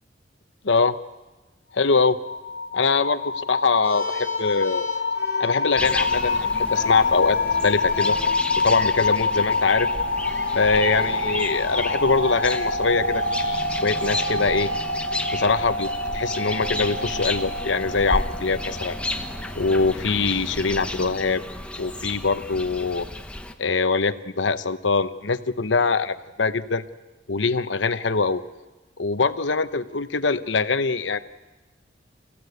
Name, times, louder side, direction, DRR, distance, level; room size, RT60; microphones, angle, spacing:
voice 1, 0.6-1.0 1.7-2.2 2.7-3.2 3.5-4.9 5.4-8.2 8.6-9.9 10.5-14.7 15.3-15.9 16.1-19.0 19.6-21.4 21.8-23.1 23.6-26.8 27.3-28.4 29.0-31.2, left 4 dB, 80° left, 11 dB, 0.9 m, -23 dB
sound 1, 1.8-19.7, left 3 dB, 60° left, 1.4 m, -26 dB
sound 2, 3.8-8.3 9.3-9.6 10.1-14.9, equal, 10° right, 6.2 m, -42 dB
sound 3, 5.8-23.5, left 1 dB, 5° left, 1.0 m, -33 dB
29.0 x 15.5 x 8.1 m, 1.2 s
head